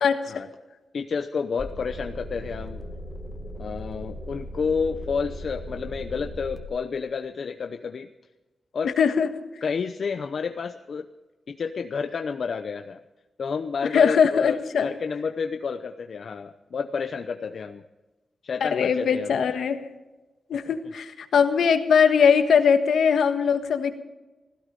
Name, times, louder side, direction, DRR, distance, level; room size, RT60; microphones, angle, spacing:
voice 1, 0.0-0.4 9.0-9.3 13.9-14.9 18.6-19.8 20.5-24.0, left 6 dB, 90° left, 8 dB, 1.5 m, -21 dB
voice 2, 0.9-2.8 3.6-8.1 8.7-9.0 9.6-11.1 11.5-13.0 13.4-17.8 18.4-19.4, left 5 dB, 65° left, 7 dB, 0.8 m, -30 dB
sound 1, 1.6-6.6, equal, 25° left, 1.9 m, -37 dB
16.5 x 16.5 x 5.4 m, 1.1 s
cardioid pair, 90°, 0 cm